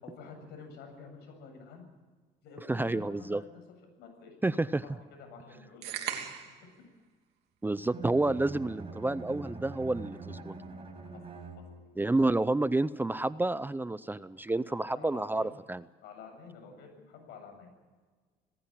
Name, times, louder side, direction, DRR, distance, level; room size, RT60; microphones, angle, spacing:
voice 1, 0.0-1.9 2.4-4.4 4.8-6.3 11.1-11.2 11.5-11.6 14.6-15.6 16.0-17.7, left 5 dB, 80° left, 4 dB, 7.7 m, -49 dB
voice 2, 2.7-3.4 4.4-4.8 7.6-10.5 12.0-15.8, right 2 dB, 10° right, 16 dB, 0.6 m, -29 dB
sound 1, 5.8-6.6, right 9 dB, 80° right, 3.1 m, -37 dB
Bowed string instrument, 7.8-12.1, right 3 dB, 35° right, 5.6 m, -44 dB
19.5 x 16.5 x 9.0 m, 1.4 s
cardioid pair, 110°, 17 cm